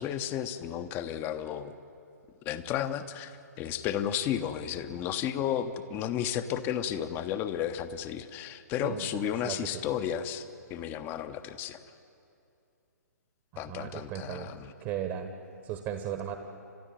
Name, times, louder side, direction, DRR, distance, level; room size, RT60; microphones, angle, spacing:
voice 1, 0.0-1.7 2.4-10.4 10.7-11.8 13.6-14.7, left 10 dB, 20° left, 10 dB, 0.9 m, -33 dB
voice 2, 8.8-9.6 13.5-14.5 14.8-15.3 15.6-16.4, right 9 dB, 30° right, 7 dB, 1.3 m, -36 dB
30.0 x 13.0 x 9.4 m, 2.6 s
figure-of-eight pair, 120°, 9 cm